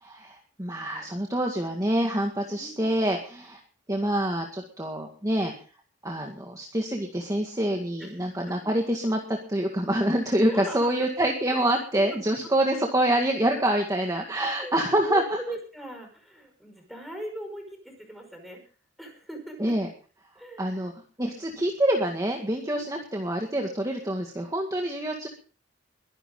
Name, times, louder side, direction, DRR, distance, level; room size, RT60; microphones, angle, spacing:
voice 1, 0.0-3.6 3.9-5.5 6.0-15.2 19.6-19.9 20.6-20.9 21.2-25.3, right 1 dB, 20° right, 1 dB, 2.0 m, -26 dB
voice 2, 1.0-1.4 2.5-3.0 8.0-8.6 10.5-11.1 11.9-12.0 12.4-12.5 14.4-18.6 19.0-19.7 20.4-20.9 21.5-21.7 22.7-22.9, right 1 dB, ahead, 3 dB, 5.5 m, -40 dB
22.5 x 11.0 x 3.9 m, 0.38 s
head